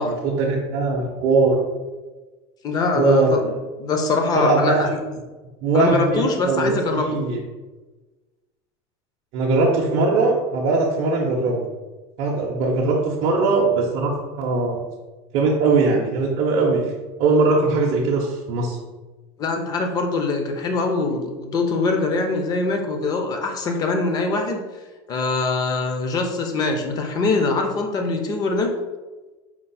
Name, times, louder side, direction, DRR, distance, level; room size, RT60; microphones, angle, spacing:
voice 1, 0.0-1.6 2.9-3.3 4.4-4.9 5.6-7.4 9.3-11.6 12.2-14.1 14.4-14.8 15.3-16.8 17.2-18.8, right 3 dB, 50° right, -3 dB, 0.6 m, -20 dB
voice 2, 2.6-3.4 3.8-5.0 5.7-7.2 19.4-24.6 25.1-28.7, left 3 dB, 25° left, 4 dB, 0.5 m, -23 dB
4.5 x 2.0 x 4.0 m, 1.2 s
supercardioid pair, 150°, 14 cm